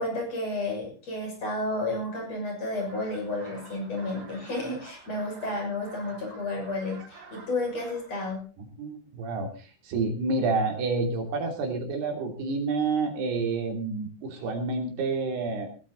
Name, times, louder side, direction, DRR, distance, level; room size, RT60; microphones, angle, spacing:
voice 1, 0.0-8.4, left 2 dB, 40° left, 1 dB, 7.5 m, -31 dB
sound 1, 2.7-8.4, right 3 dB, 60° right, 6.5 m, -49 dB
voice 2, 8.6-15.7, right 3 dB, 80° right, 3 dB, 5.1 m, -29 dB
20.0 x 13.0 x 4.0 m, 0.35 s
omnidirectional pair, 4.6 m